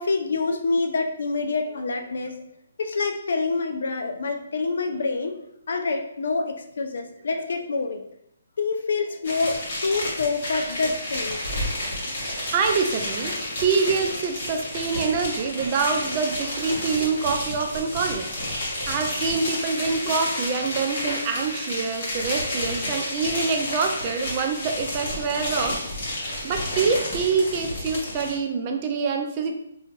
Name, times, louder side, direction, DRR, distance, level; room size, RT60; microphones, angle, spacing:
voice 1, 0.0-2.4 2.8-5.3 5.7-8.0 8.6-11.4, left 3 dB, 65° left, 5 dB, 0.4 m, -26 dB
sound 1, 9.2-28.4, left 1 dB, 45° left, 1.0 m, -30 dB
voice 2, 12.5-13.3 13.6-18.3 18.9-25.8 26.4-29.5, right 5 dB, 25° right, 3 dB, 0.3 m, -25 dB
2.4 x 2.3 x 3.1 m, 0.77 s
hypercardioid pair, 165°, 0 cm